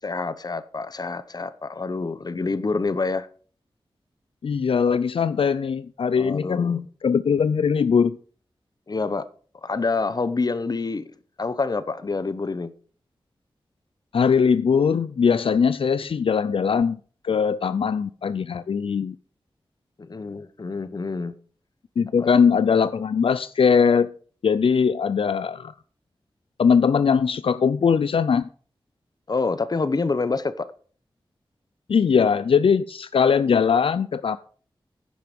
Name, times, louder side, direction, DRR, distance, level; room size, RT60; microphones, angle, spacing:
voice 1, 0.0-3.3 6.2-6.8 8.9-9.3 9.6-11.1 11.4-12.7 20.0-21.3 22.2-22.3 29.3-30.7, left 3 dB, 45° left, 0.9 m, -27 dB
voice 2, 4.4-8.2 14.1-17.0 17.2-19.2 22.0-24.1 24.4-25.7 26.6-28.5 31.9-34.4, left 6 dB, 75° left, 0.4 m, -20 dB
10.5 x 9.6 x 5.2 m
wide cardioid pair, 105°, 9 cm